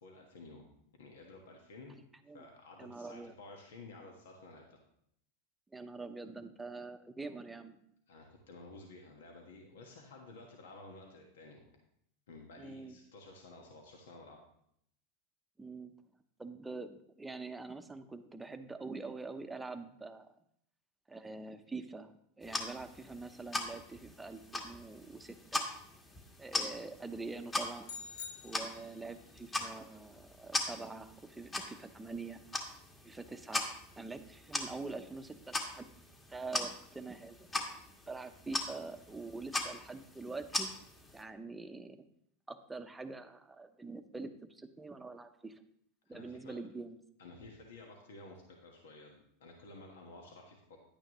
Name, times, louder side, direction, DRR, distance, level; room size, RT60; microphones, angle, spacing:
voice 1, 0.0-0.7 1.0-2.0 2.3-4.8 8.1-11.6 12.3-14.4 46.0-46.6 47.2-50.8, left 2 dB, 80° left, 1 dB, 1.4 m, -53 dB
voice 2, 2.8-3.3 5.7-7.8 12.6-13.0 15.6-15.9 16.4-20.3 21.1-25.7 26.4-27.9 28.4-32.4 33.0-35.8 36.3-37.5 38.1-40.7 41.1-42.1 42.5-45.6 46.1-47.0, right 3 dB, 10° right, 8 dB, 0.7 m, -45 dB
sound 1, 22.4-41.2, left 2 dB, 20° left, 1.6 m, -41 dB
sound 2, 27.8-29.2, left 6 dB, 65° left, 0.7 m, -47 dB
10.5 x 8.9 x 3.1 m, 0.71 s
hypercardioid pair, 105°, 0 cm